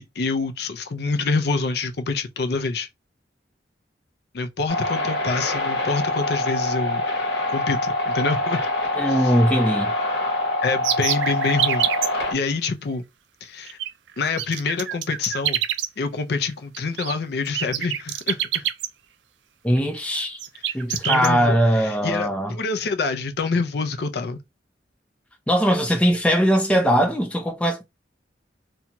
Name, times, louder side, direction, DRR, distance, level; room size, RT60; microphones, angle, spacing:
voice 1, 0.0-2.9 4.3-7.0 7.5-8.7 9.0-9.3 10.6-11.9 12.3-13.0 13.4-13.8 14.2-15.6 16.0-18.6 20.9-24.4, left 4 dB, 65° left, 0.5 m, -26 dB
sound 1, 4.7-12.3, left 2 dB, 85° left, 1.0 m, -25 dB
voice 2, 9.0-9.9 19.6-20.4 20.7-22.5 25.5-27.8, equal, 5° left, 0.6 m, -20 dB
sound 2, 10.8-12.1 13.6-13.9 14.2-15.9 16.7-17.1 17.5-18.9 19.8-20.0 20.4-21.3, right 11 dB, 90° right, 0.4 m, -25 dB
2.6 x 2.3 x 2.9 m
head